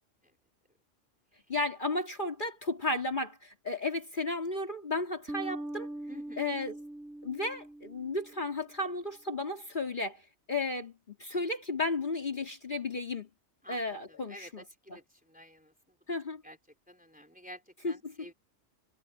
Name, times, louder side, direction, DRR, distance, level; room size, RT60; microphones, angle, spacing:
voice 1, 1.5-5.9 6.4-6.8 7.2-10.2 10.5-13.3 13.7-14.6 14.9-15.0 16.1-16.4 17.8-18.3, left 2 dB, 40° left, 2.4 m, -34 dB
sound 1, 5.3-8.6, right 1 dB, 80° right, 3.8 m, -42 dB
voice 2, 6.1-6.6 13.6-15.7 16.4-16.6 16.9-18.3, equal, 5° right, 3.3 m, -51 dB
omnidirectional pair, 1.2 m